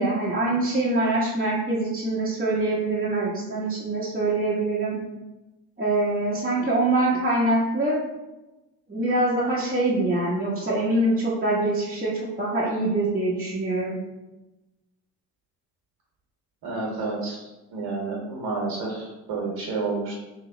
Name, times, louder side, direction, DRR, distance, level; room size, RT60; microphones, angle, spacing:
voice 1, 0.0-5.0 5.8-8.0 8.9-14.0, right 2 dB, 20° right, -7 dB, 1.0 m, -24 dB
voice 2, 16.6-17.4 17.7-20.1, right 3 dB, 60° right, -3 dB, 1.3 m, -30 dB
3.1 x 2.9 x 3.8 m, 1.0 s
hypercardioid pair, 50°, 45 cm